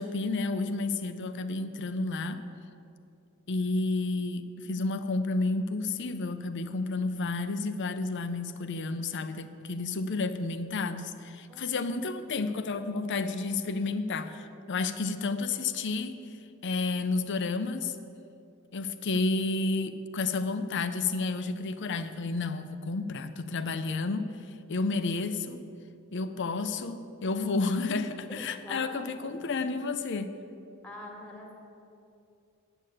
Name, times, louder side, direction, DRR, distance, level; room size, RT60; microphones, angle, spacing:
voice 1, 0.0-2.4 3.5-16.2 16.6-17.9 18.7-24.3 24.7-25.6 26.1-30.3, left 3 dB, 55° left, 10 dB, 0.6 m, -31 dB
voice 2, 28.4-29.4 30.8-31.5, left 1 dB, 5° left, 0 dB, 1.7 m, -45 dB
9.0 x 6.6 x 8.5 m, 2.6 s
head